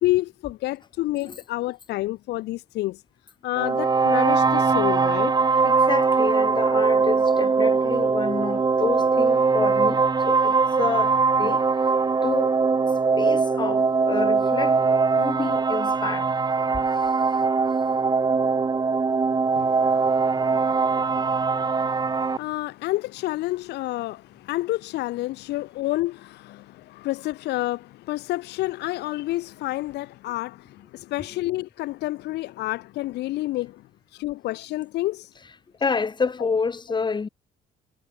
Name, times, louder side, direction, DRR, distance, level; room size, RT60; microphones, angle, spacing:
voice 1, 0.0-3.0 3.4-5.3 19.5-20.3 20.6-20.7 20.9-33.8 34.2-35.3 36.4-36.5, left 17 dB, 80° left, 2.8 m, -29 dB
sound 1, 3.6-22.4, right 4 dB, 25° right, 2.1 m, -21 dB
voice 2, 5.6-11.9 12.2-12.5 13.2-14.8 15.2-16.4 16.7-16.8 31.2-31.3 35.8-37.3, left 4 dB, 25° left, 6.2 m, -29 dB
cardioid pair, 110°, 17 cm